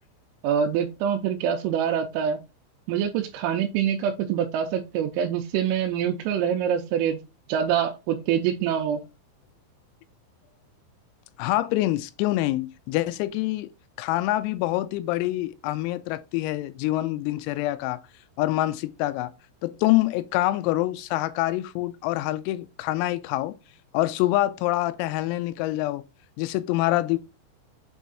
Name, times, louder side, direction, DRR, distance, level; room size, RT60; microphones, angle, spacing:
voice 1, 0.4-2.4 2.9-7.2 7.5-9.0, right 8 dB, 85° right, 3.3 m, -25 dB
voice 2, 11.4-13.7 14.0-18.0 18.4-19.3 19.6-23.5 23.9-26.0 26.4-27.2, left 16 dB, 90° left, 3.3 m, -25 dB
8.4 x 3.5 x 4.0 m
omnidirectional pair, 6.0 m